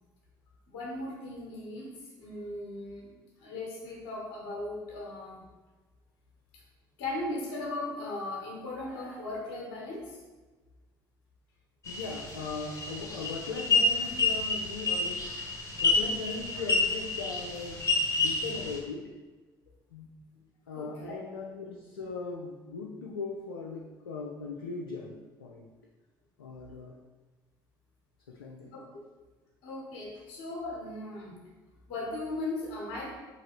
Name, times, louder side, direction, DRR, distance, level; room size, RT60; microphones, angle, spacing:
voice 1, 0.7-1.9 2.2-3.1 3.4-5.4 7.0-10.2 20.7-21.1 28.7-29.0 29.6-31.3 31.9-33.1, left 2 dB, 70° left, -4 dB, 1.1 m, -37 dB
sound 1, 11.8-18.8, left 3 dB, 25° left, 1.2 m, -29 dB
voice 2, 11.9-15.3 15.8-19.1 19.9-20.1 20.7-25.7 26.4-27.0 28.3-28.7, left 4 dB, 90° left, -1 dB, 0.4 m, -39 dB
3.8 x 3.2 x 3.0 m, 1.3 s
hypercardioid pair, 60°, 11 cm